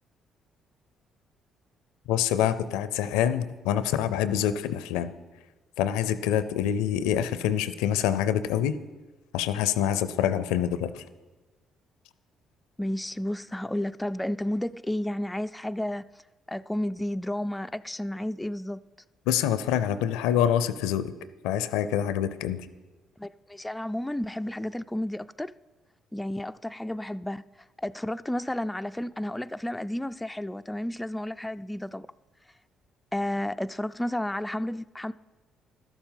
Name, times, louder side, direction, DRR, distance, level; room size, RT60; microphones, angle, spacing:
voice 1, 2.1-5.1 5.8-8.7 9.3-11.0 19.3-21.1 21.4-22.6, left 10 dB, 80° left, 0.5 m, -26 dB
voice 2, 12.8-16.1 16.5-18.8 23.2-25.5 26.1-27.4 27.8-32.1 33.1-35.1, left 1 dB, 10° left, 0.3 m, -32 dB
12.5 x 7.1 x 5.7 m
hypercardioid pair, 55°, 0 cm